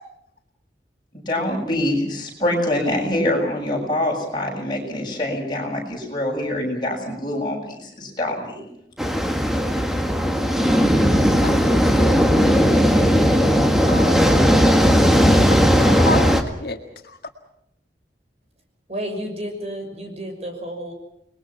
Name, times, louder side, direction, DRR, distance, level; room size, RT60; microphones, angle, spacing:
voice 1, 1.1-8.7, left 1 dB, 25° left, 0 dB, 7.4 m, -25 dB
sound 1, 9.0-16.4, equal, ahead, 1.8 m, -17 dB
voice 2, 11.4-13.4 13.9-15.0 15.8-16.8, left 2 dB, 60° left, 4 dB, 1.9 m, -31 dB
voice 3, 18.9-20.9, equal, 35° right, 3 dB, 6.0 m, -31 dB
29.5 x 21.5 x 6.0 m, 0.77 s
head